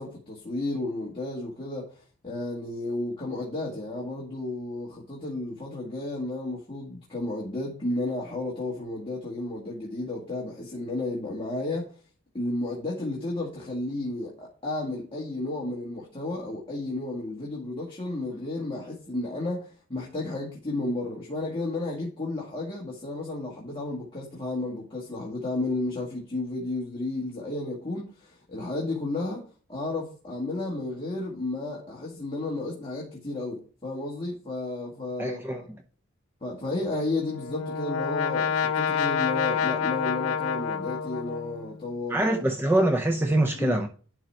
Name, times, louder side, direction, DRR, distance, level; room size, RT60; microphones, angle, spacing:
voice 1, 0.0-11.9 12.3-35.7 36.4-42.3 43.6-43.8, left 2 dB, 25° left, 2.0 m, -32 dB
voice 2, 35.2-35.6 42.1-43.9, right 1 dB, 10° right, 0.6 m, -24 dB
Brass instrument, 37.0-41.8, left 6 dB, 80° left, 0.7 m, -28 dB
11.0 x 4.0 x 4.4 m
head